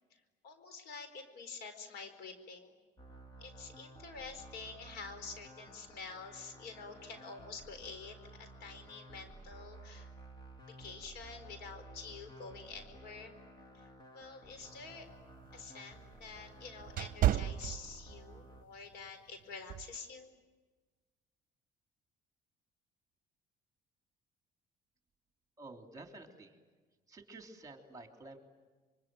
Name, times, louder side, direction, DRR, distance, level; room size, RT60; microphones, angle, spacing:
voice 1, 0.1-2.7 3.4-10.1 10.7-13.4 13.7-15.1 15.5-20.3, left 4 dB, 75° left, 8 dB, 4.5 m, -48 dB
sound 1, 3.0-18.6, right 2 dB, 25° left, 2.5 m, -54 dB
sound 2, 14.7-18.4 18.8-19.1 19.7-20.0, right 13 dB, 55° right, 0.8 m, -34 dB
voice 2, 25.6-26.6 27.1-28.4, right 2 dB, 20° right, 3 dB, 3.4 m, -51 dB
26.5 x 24.5 x 9.2 m, 1.3 s
cardioid pair, 110°, 17 cm